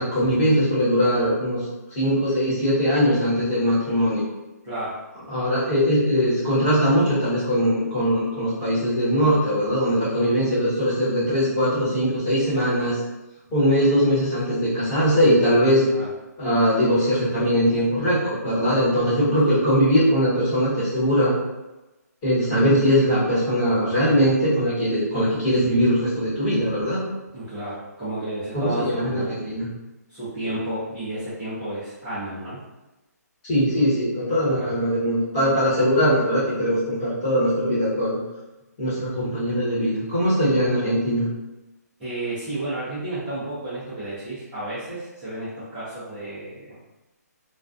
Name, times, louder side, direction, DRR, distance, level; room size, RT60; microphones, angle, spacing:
voice 1, 0.0-1.6 1.9-4.2 5.3-13.0 13.5-15.8 16.4-21.4 22.2-27.0 28.5-29.7 33.5-38.2 38.8-41.2, equal, 20° left, -12 dB, 1.1 m, -21 dB
voice 2, 4.6-5.0 15.9-16.1 27.3-29.5 30.1-32.6 34.5-34.7 42.0-46.8, right 1 dB, 10° right, -16 dB, 0.6 m, -32 dB
2.3 x 2.2 x 2.5 m, 1.0 s
hypercardioid pair, 170°, 9 cm